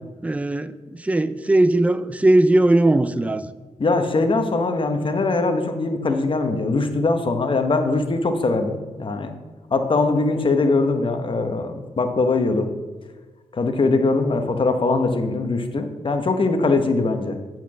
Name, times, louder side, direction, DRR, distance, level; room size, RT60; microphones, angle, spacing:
voice 1, 0.2-3.5, right 1 dB, 10° right, 12 dB, 0.4 m, -19 dB
voice 2, 3.8-9.3 9.7-12.7 13.5-17.4, left 3 dB, 45° left, 6 dB, 1.0 m, -21 dB
8.1 x 4.6 x 6.1 m, 1.3 s
cardioid pair, 70°, 12 cm